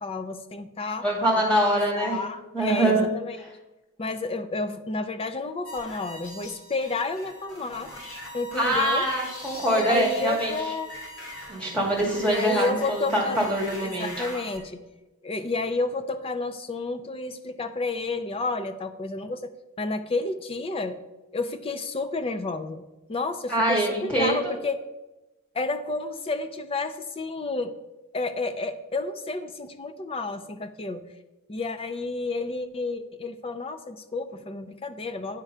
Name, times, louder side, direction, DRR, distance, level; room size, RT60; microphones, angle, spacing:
voice 1, 0.0-1.0 1.9-3.4 4.0-7.9 8.3-9.0 9.7-10.9 12.2-13.4 13.8-14.8 15.2-19.5 19.8-21.0 21.3-24.8 25.5-27.7 28.1-31.1 31.5-35.4, left 3 dB, 25° left, 11 dB, 0.4 m, -31 dB
voice 2, 1.0-2.1 2.5-3.0 8.5-10.7 11.5-14.4 23.5-24.4, right 1 dB, 5° left, -4 dB, 2.1 m, -24 dB
sound 1, 5.7-14.6, left 1 dB, 65° left, 1.8 m, -41 dB
9.7 x 3.7 x 5.4 m, 1.0 s
head